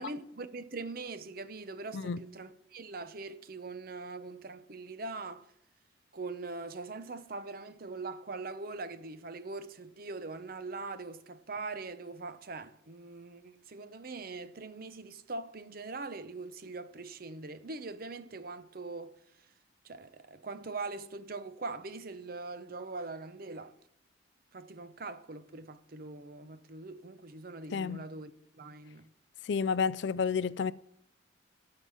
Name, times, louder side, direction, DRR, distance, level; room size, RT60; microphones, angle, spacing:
voice 1, 0.0-5.5 6.1-19.5 19.8-23.7 24.5-29.1, right 3 dB, 45° right, 0.7 m, -42 dB
voice 2, 27.7-28.0 29.4-30.7, left 5 dB, 60° left, 0.4 m, -30 dB
12.5 x 5.8 x 8.4 m
head